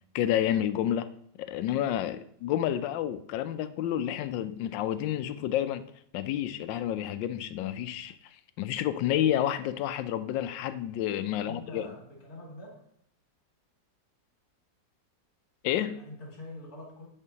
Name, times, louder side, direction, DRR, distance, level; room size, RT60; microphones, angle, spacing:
voice 1, 0.1-1.1 1.4-5.8 6.1-8.1 8.6-11.9 15.6-16.0, left 11 dB, 80° left, 1.2 m, -29 dB
voice 2, 11.3-12.8 15.9-17.1, left 1 dB, 55° left, 2.5 m, -45 dB
9.9 x 4.4 x 2.8 m
omnidirectional pair, 2.0 m